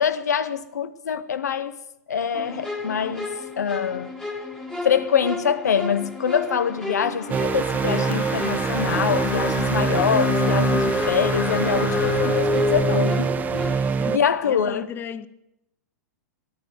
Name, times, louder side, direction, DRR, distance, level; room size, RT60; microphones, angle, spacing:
voice 1, 0.0-1.8 2.1-3.3 3.6-4.1 4.8-14.9, left 7 dB, 85° left, 0.8 m, -24 dB
sound 1, 2.3-13.8, left 2 dB, 5° left, 2.0 m, -30 dB
sound 2, 6.4-13.4, left 7 dB, 65° left, 2.0 m, -35 dB
sound 3, 7.3-14.2, right 6 dB, 20° right, 0.4 m, -25 dB
voice 2, 14.0-15.3, left 7 dB, 25° left, 0.6 m, -35 dB
13.5 x 11.5 x 5.1 m
hypercardioid pair, 110°, 9 cm